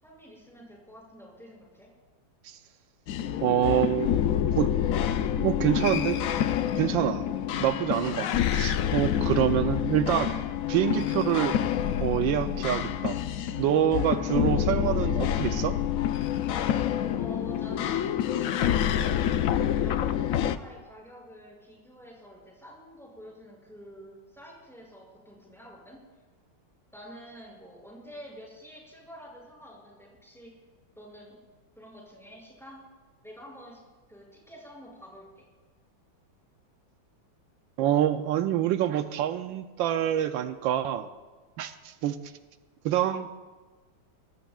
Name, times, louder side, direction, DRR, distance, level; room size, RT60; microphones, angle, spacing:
voice 1, 0.0-1.9 17.1-18.4 19.7-26.0 26.9-30.5 31.0-31.4 31.8-32.8 33.2-33.8 34.1-35.5, equal, ahead, -3 dB, 6.3 m, -48 dB
sound 1, 3.1-20.6, left 10 dB, 70° left, 0.8 m, -27 dB
voice 2, 3.4-4.7 5.4-6.2 6.8-7.2 7.5-10.3 10.7-11.6 12.0-13.2 13.6-15.8 37.8-41.1 41.6-42.2 42.8-43.3, right 11 dB, 85° right, 9 dB, 1.4 m, -26 dB
24.0 x 19.5 x 2.4 m, 1.3 s
omnidirectional pair, 2.1 m